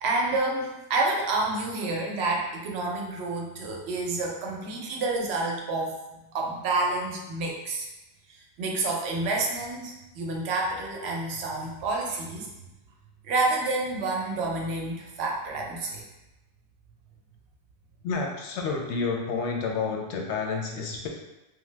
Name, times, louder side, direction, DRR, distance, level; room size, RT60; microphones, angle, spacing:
voice 1, 0.0-7.9 8.3-12.5 13.2-16.1, right 2 dB, 70° right, 0 dB, 0.8 m, -29 dB
voice 2, 18.0-21.1, left 4 dB, 85° left, 1 dB, 0.9 m, -29 dB
2.8 x 2.1 x 3.2 m, 0.98 s
omnidirectional pair, 1.1 m